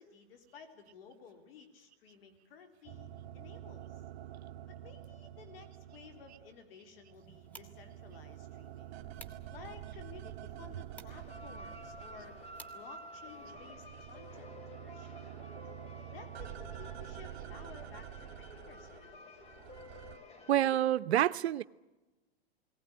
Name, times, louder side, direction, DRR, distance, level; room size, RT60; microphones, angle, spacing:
voice 1, 0.0-3.1 3.3-4.0 4.7-8.9 9.5-12.4 12.7-15.2 16.1-19.2, left 6 dB, 65° left, 3.4 m, -55 dB
sound 1, 2.9-6.6 7.0-12.9 13.2-20.2, right 12 dB, 40° right, 1.6 m, -48 dB
sound 2, 7.1-13.5, equal, 5° left, 1.6 m, -59 dB
sound 3, 11.1-20.8, left 1 dB, 20° left, 3.4 m, -51 dB
voice 2, 20.5-21.6, right 12 dB, 85° right, 0.7 m, -27 dB
19.0 x 18.5 x 10.0 m
hypercardioid pair, 130°, 31 cm